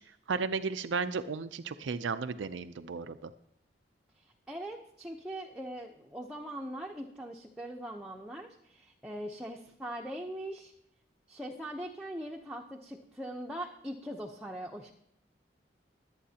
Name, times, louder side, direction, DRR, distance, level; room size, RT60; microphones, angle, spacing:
voice 1, 0.3-3.3, right 5 dB, 85° right, 10 dB, 0.5 m, -34 dB
voice 2, 4.2-10.7 11.3-14.9, right 1 dB, 5° right, -1 dB, 0.7 m, -41 dB
23.0 x 8.5 x 2.8 m, 0.78 s
head